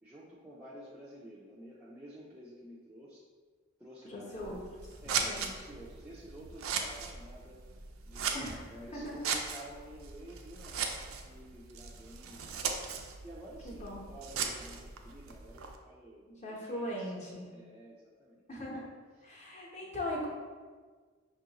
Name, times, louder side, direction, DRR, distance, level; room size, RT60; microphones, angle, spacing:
voice 1, 0.0-3.2 3.8-4.7 5.0-7.6 8.1-12.8 13.2-18.4 18.7-18.8 19.2-19.5, right 1 dB, 5° right, -8 dB, 0.4 m, -51 dB
voice 2, 4.1-4.9 5.3-5.5 8.3-8.6 8.9-9.1 13.6-14.1 16.3-17.5 18.5-18.9 19.2-20.3, left 1 dB, 35° left, -4 dB, 0.9 m, -39 dB
Scissors, 4.3-15.8, right 6 dB, 75° right, 0.4 m, -38 dB
5.4 x 2.5 x 2.8 m, 1.5 s
head